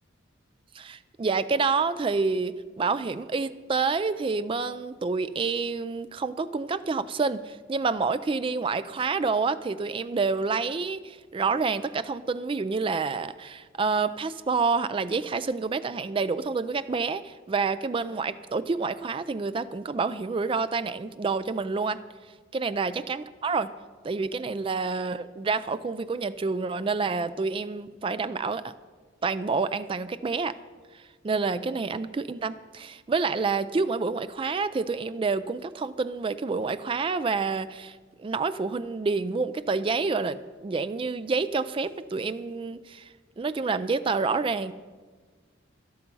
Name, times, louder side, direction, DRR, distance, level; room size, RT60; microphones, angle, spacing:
voice 1, 0.7-22.0 22.5-23.7 24.0-28.7 29.2-30.5 30.9-44.7, right 4 dB, 25° right, 13 dB, 0.3 m, -28 dB
12.5 x 12.0 x 5.5 m, 1.4 s
head